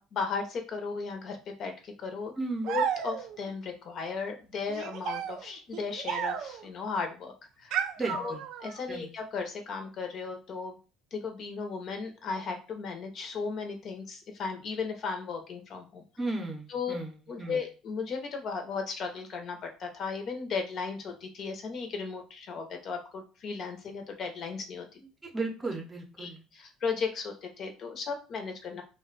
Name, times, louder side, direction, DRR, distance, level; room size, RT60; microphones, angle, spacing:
voice 1, 0.0-2.4 2.7-7.7 8.1-8.3 8.6-10.8 11.1-16.0 16.7-16.9 17.3-24.9 26.2-28.8, left 5 dB, 50° left, 4 dB, 0.7 m, -36 dB
voice 2, 2.4-2.7 8.0-8.4 8.9-9.1 16.2-17.6 25.2-26.4, right 3 dB, 15° right, 2 dB, 0.7 m, -35 dB
sound 1, 2.6-3.5 4.7-6.7 7.7-8.8, right 8 dB, 70° right, 0.3 m, -33 dB
2.4 x 2.2 x 3.9 m, 0.33 s
cardioid pair, 125°, 0 cm